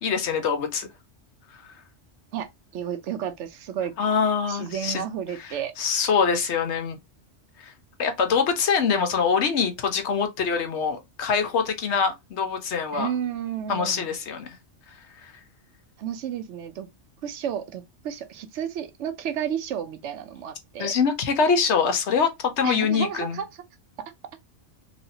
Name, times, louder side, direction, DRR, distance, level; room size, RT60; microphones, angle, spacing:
voice 1, 0.0-0.9 1.6-1.7 4.0-5.0 5.4-7.0 7.6-7.7 8.0-13.1 13.7-14.6 15.2-15.3 20.8-23.4, left 6 dB, 70° left, 1.0 m, -24 dB
voice 2, 2.3-3.9 4.5-5.7 12.9-14.1 16.0-16.9 17.2-20.9 22.6-23.5, right 9 dB, 80° right, 0.9 m, -32 dB
3.1 x 2.8 x 2.7 m
omnidirectional pair, 1.2 m